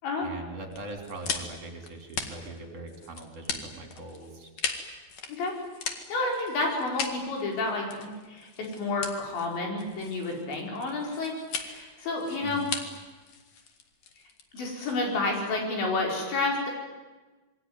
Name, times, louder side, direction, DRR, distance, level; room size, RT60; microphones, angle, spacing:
voice 1, 0.2-4.5 12.4-12.7, right 2 dB, 35° right, 4 dB, 4.1 m, -41 dB
sound 1, 0.7-15.4, left 5 dB, 50° left, 2.6 m, -38 dB
voice 2, 6.1-12.7 14.5-16.7, left 3 dB, 70° left, 0 dB, 7.1 m, -30 dB
27.0 x 22.5 x 9.5 m, 1.2 s
omnidirectional pair, 5.3 m